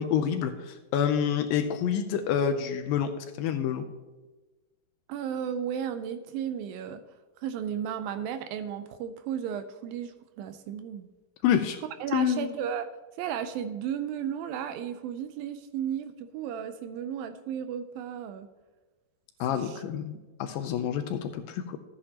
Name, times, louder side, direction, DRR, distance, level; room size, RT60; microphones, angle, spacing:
voice 1, 0.0-3.8 11.4-11.8 12.1-12.5 19.4-21.8, left 8 dB, 80° left, 8 dB, 2.1 m, -28 dB
voice 2, 5.1-7.0 7.4-11.1 12.0-12.9 13.2-18.5 19.6-19.8 20.1-20.3, right 8 dB, 80° right, 10 dB, 2.2 m, -34 dB
13.5 x 8.5 x 2.9 m, 1.2 s
omnidirectional pair, 4.4 m